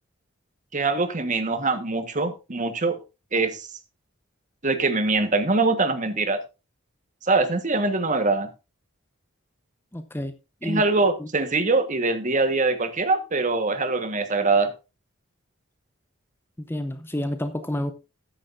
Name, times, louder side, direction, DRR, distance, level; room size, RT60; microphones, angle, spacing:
voice 1, 0.7-3.0 3.3-3.7 4.6-6.4 7.2-8.5 10.6-14.7, right 3 dB, 40° right, 1.3 m, -23 dB
voice 2, 9.9-10.3 10.6-10.8 11.2-11.3 16.6-17.9, left 1 dB, 10° left, 0.7 m, -29 dB
13.5 x 10.5 x 2.6 m
head